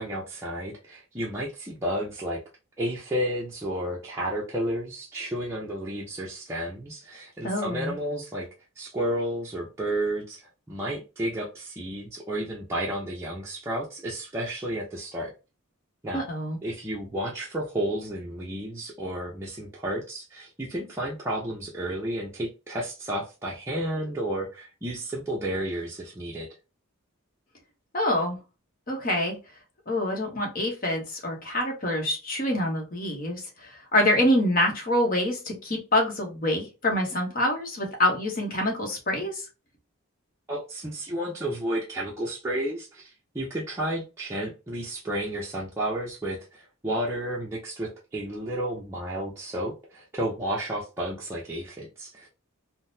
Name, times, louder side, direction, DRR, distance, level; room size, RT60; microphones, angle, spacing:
voice 1, 0.0-2.4 2.8-8.5 8.8-10.4 10.7-15.3 16.0-16.2 16.6-26.5 40.5-52.3, right 1 dB, 15° right, -5 dB, 0.5 m, -32 dB
voice 2, 7.4-8.0 16.1-16.6 27.9-28.4 28.9-29.4 29.9-39.4, left 1 dB, 40° left, 1 dB, 1.0 m, -26 dB
3.7 x 2.1 x 2.6 m, 0.30 s
head